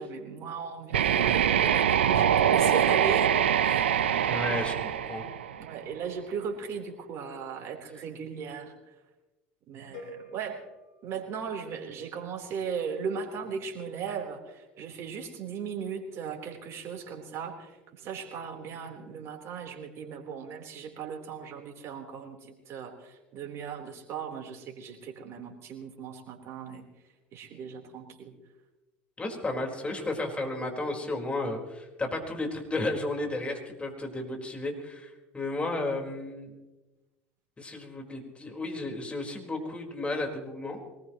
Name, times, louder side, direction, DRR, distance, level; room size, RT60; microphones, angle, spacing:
voice 1, 0.0-5.0 5.6-8.7 9.7-10.6 11.0-22.4 22.7-26.8 27.3-28.3, right 6 dB, 50° right, 2 dB, 4.0 m, -37 dB
sound 1, 0.9-5.8, right 9 dB, 85° right, 0.9 m, -24 dB
voice 2, 4.2-5.2 29.2-36.5 37.6-40.8, left 2 dB, 20° left, 2 dB, 4.6 m, -33 dB
sound 2, 9.9-12.0, left 1 dB, 70° left, 7.2 m, -48 dB
23.5 x 20.0 x 3.1 m, 1.1 s
hypercardioid pair, 75°, 6 cm